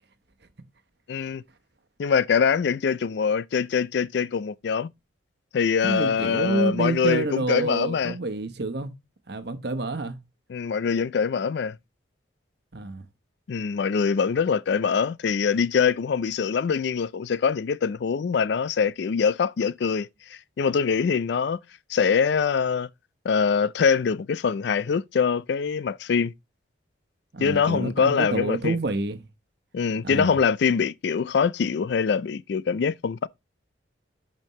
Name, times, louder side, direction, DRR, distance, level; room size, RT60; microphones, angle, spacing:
voice 1, 1.1-1.4 2.0-4.9 5.5-8.2 10.5-11.8 13.5-20.1 20.6-21.6 21.9-22.9 23.2-26.3 27.4-28.8 29.7-33.3, left 6 dB, 60° left, 0.3 m, -24 dB
voice 2, 5.8-8.9 9.3-10.2 12.7-13.1 27.3-29.2 30.0-30.4, right 2 dB, 55° right, 1.1 m, -28 dB
11.0 x 5.2 x 3.1 m
head